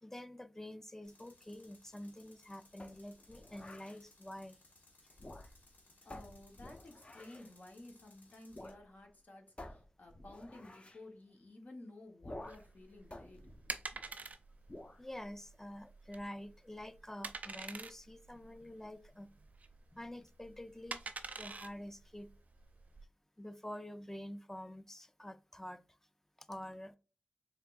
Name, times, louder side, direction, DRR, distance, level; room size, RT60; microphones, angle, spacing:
voice 1, 0.0-4.6 15.0-19.3 19.9-21.0 21.4-22.3 23.4-26.0 26.4-27.0, left 1 dB, 10° left, 0.4 m, -47 dB
Tools, 1.0-8.7, left 2 dB, 90° left, 1.2 m, -65 dB
sound 1, 2.8-4.0 5.1-5.7 6.1-7.5 8.5-8.8 9.1-9.2 9.6-11.0 12.2-12.8 13.1-14.2 14.7-15.0, left 1 dB, 40° left, 0.7 m, -51 dB
voice 2, 6.0-13.4, left 2 dB, 60° left, 1.3 m, -54 dB
sound 2, 12.4-23.0, right 4 dB, 60° right, 0.4 m, -47 dB
3.7 x 3.5 x 2.5 m
cardioid pair, 50°, 3 cm